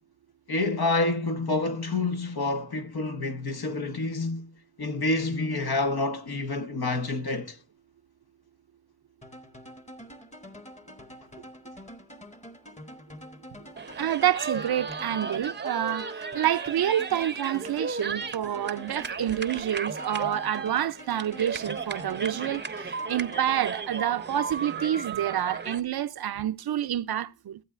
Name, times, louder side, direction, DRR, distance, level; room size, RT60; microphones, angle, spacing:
voice 1, 0.5-4.5 4.8-7.6, left 2 dB, 75° left, 1.2 m, -28 dB
sound 1, 9.2-24.3, equal, 20° left, 1.0 m, -46 dB
sound 2, 13.8-25.8, right 5 dB, 30° right, 0.6 m, -35 dB
voice 2, 14.0-27.6, right 11 dB, 80° right, 0.5 m, -28 dB
15.5 x 8.1 x 2.4 m
wide cardioid pair, 70°, 37 cm